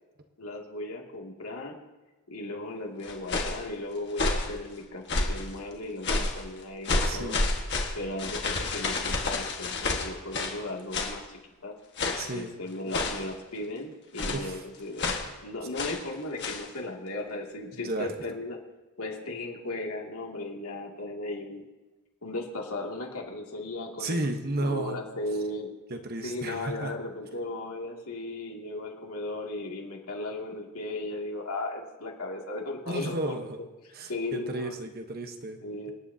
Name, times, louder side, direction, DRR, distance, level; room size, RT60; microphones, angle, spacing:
voice 1, 0.4-1.8 2.3-5.0 5.3-7.3 7.9-11.7 12.3-15.1 15.4-18.6 19.0-21.7 22.2-24.2 24.6-25.7 26.2-33.4 34.1-34.7 35.6-35.9, left 2 dB, 85° left, 0 dB, 2.5 m, -36 dB
sound 1, 3.0-3.6 4.1-4.5 5.1-5.5 6.0-6.4 6.8-10.6 10.9-11.2 12.0-12.3 12.9-13.3 14.2-14.5 15.0-15.3 15.7-16.0 16.4-16.7, left 2 dB, 50° left, 1.6 m, -29 dB
voice 2, 7.0-7.5 12.2-12.5 14.3-14.6 17.7-18.1 24.0-25.0 25.9-26.9 32.9-33.6 33.9-35.6, right 1 dB, 45° right, 5 dB, 1.2 m, -33 dB
27.0 x 10.0 x 2.8 m, 1.2 s
head